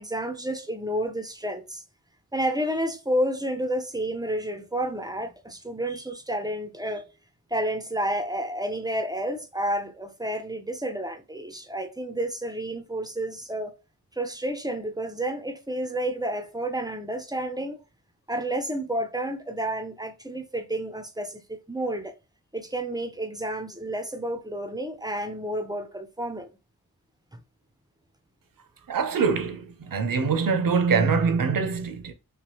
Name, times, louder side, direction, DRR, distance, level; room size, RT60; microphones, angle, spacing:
voice 1, 0.0-1.8 2.3-7.1 7.5-13.7 14.2-17.8 18.3-22.2 22.5-26.5, right 1 dB, 10° right, 0.5 m, -30 dB
voice 2, 28.9-32.1, right 5 dB, 60° right, 0.7 m, -24 dB
3.1 x 2.3 x 3.0 m
cardioid pair, 40°, 38 cm